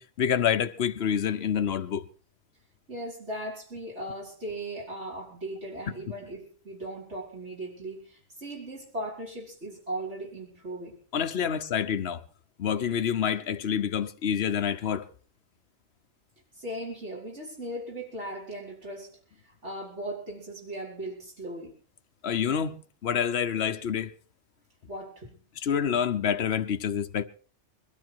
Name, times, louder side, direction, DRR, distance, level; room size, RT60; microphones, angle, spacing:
voice 1, 0.0-2.1 11.1-12.2 12.6-15.1 22.2-24.1 25.6-27.2, left 8 dB, 65° left, 1.1 m, -27 dB
voice 2, 2.9-10.9 16.6-21.8 24.9-25.4, right 1 dB, 75° right, 5.6 m, -38 dB
21.5 x 13.0 x 4.6 m
omnidirectional pair, 1.2 m